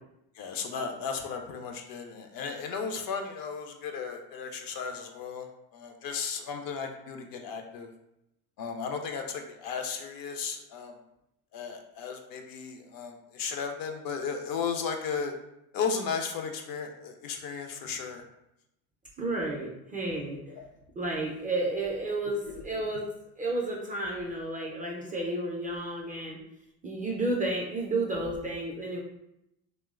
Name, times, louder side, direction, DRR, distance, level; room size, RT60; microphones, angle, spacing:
voice 1, 0.4-7.9 8.6-10.9 11.5-15.3 15.7-18.2 20.5-20.6 22.5-22.6, left 5 dB, 50° left, 4 dB, 0.5 m, -35 dB
voice 2, 19.2-20.4 21.0-23.0 23.4-26.4 26.8-29.0, right 2 dB, 20° right, -2 dB, 0.3 m, -31 dB
2.9 x 2.1 x 2.3 m, 0.83 s
hypercardioid pair, 70°, 47 cm